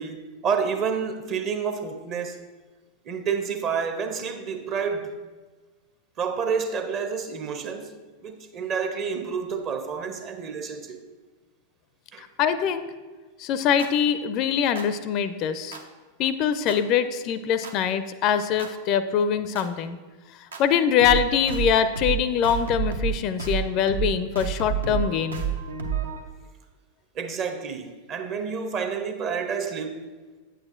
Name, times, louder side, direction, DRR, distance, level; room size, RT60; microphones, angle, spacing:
voice 1, 0.0-2.4 3.0-5.2 6.2-11.0 12.1-12.2 27.1-30.1, right 6 dB, 35° right, 0.8 m, -29 dB
voice 2, 12.2-12.9 13.4-15.8 16.2-20.0 20.6-25.4, left 8 dB, 40° left, 0.4 m, -23 dB
sound 1, 13.8-13.9 14.8-14.9 15.7-15.8 16.7-16.8 17.6-17.7 18.6-18.7 19.6-19.7 20.5-20.6 21.0-21.2 21.5-21.7 22.0-22.2 22.4-23.1 23.4-23.6 23.9-24.1 24.4-26.2, right 7 dB, 70° right, 0.7 m, -29 dB
8.6 x 7.8 x 2.5 m
figure-of-eight pair, 90°, 0 cm